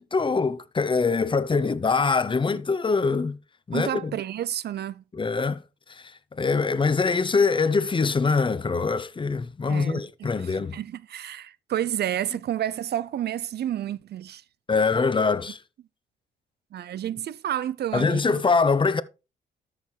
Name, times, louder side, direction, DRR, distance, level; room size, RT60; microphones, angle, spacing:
voice 1, 0.1-3.4 3.7-4.1 5.1-5.6 5.9-6.0 6.3-10.8 14.7-15.6 17.9-19.0, left 4 dB, 25° left, 0.7 m, -23 dB
voice 2, 3.7-5.0 9.7-14.4 16.7-18.4, right 11 dB, 55° right, 0.5 m, -30 dB
13.0 x 6.6 x 3.3 m
cardioid pair, 90°, 20 cm